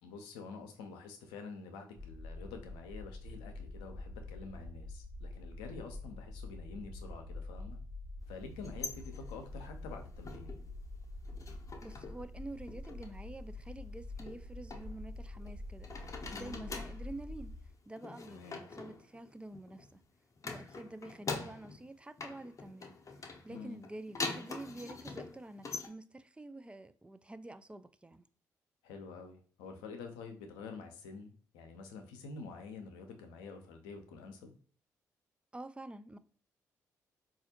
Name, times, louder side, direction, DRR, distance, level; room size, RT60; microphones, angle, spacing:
voice 1, 0.0-7.8 8.3-10.6 16.3-16.8 18.3-18.6 23.5-23.8 28.8-34.6, left 4 dB, 80° left, 0.5 m, -48 dB
sound 1, 2.0-17.7, left 2 dB, 55° right, 0.9 m, -46 dB
sound 2, 8.5-10.7 11.0-12.3 12.5-13.1 14.2-15.5 15.8-17.1 18.0-19.9 20.4-21.9 22.2-25.9, left 3 dB, 40° left, 0.6 m, -44 dB
voice 2, 11.8-17.5 17.9-20.0 20.4-23.0 23.4-28.2 35.5-36.2, right 2 dB, 15° right, 0.3 m, -48 dB
4.1 x 2.4 x 2.7 m
hypercardioid pair, 40°, 8 cm